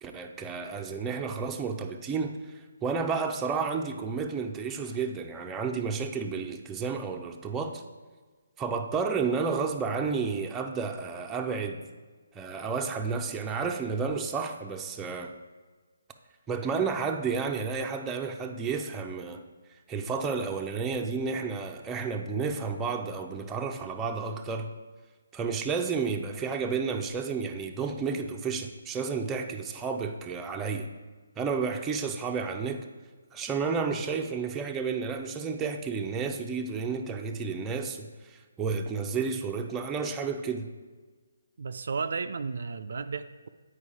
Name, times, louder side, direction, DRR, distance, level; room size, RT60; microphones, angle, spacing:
voice 1, 0.0-2.5 2.8-7.8 8.6-11.8 12.3-15.3 16.5-19.4 19.9-24.7 25.3-30.9 31.4-32.9 33.3-40.7, right 5 dB, 10° right, 3 dB, 0.5 m, -31 dB
voice 2, 41.6-43.5, right 5 dB, 65° right, 9 dB, 0.3 m, -33 dB
8.4 x 4.8 x 4.8 m, 1.4 s
figure-of-eight pair, 150°, 0 cm